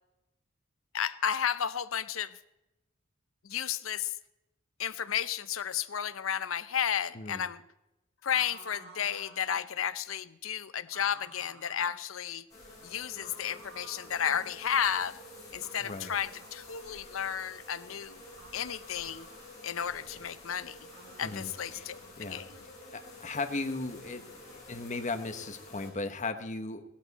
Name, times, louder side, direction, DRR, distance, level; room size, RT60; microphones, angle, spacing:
voice 1, 0.9-2.4 3.4-4.1 4.8-7.6 8.2-12.4 12.8-15.1 15.5-18.2 18.5-19.3 19.6-20.8 21.2-22.5, left 8 dB, 80° left, 14 dB, 0.7 m, -33 dB
voice 2, 7.1-7.5 15.8-16.1 21.2-21.9 22.2-22.5 22.9-26.8, left 3 dB, 35° left, 7 dB, 1.1 m, -37 dB
sound 1, 8.3-9.7 10.9-12.0 13.2-14.2 15.5-17.0 18.3-19.5 20.9-22.2, right 3 dB, 90° right, 3.7 m, -53 dB
sound 2, 12.5-25.9, left 2 dB, 15° left, 6.3 m, -50 dB
17.5 x 13.0 x 4.2 m, 0.94 s
head